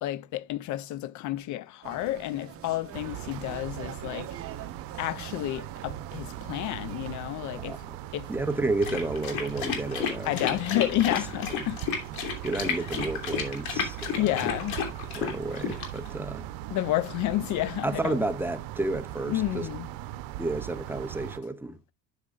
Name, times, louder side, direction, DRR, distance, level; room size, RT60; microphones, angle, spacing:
voice 1, 0.0-4.4 4.9-7.8 8.1-8.3 10.2-11.8 12.7-12.9 14.2-14.8 16.7-18.2 19.3-19.9, left 15 dB, 55° left, 0.5 m, -30 dB
sound 1, 1.8-7.2, right 10 dB, 40° right, 1.0 m, -44 dB
sound 2, 2.9-21.4, right 13 dB, 75° right, 0.8 m, -39 dB
voice 2, 8.3-10.4 12.4-14.4 15.1-16.5 17.8-19.7 20.4-21.8, right 2 dB, 5° right, 0.5 m, -31 dB
sound 3, 8.8-16.1, left 7 dB, 85° left, 3.0 m, -32 dB
12.0 x 6.4 x 2.4 m
cardioid pair, 145°, 36 cm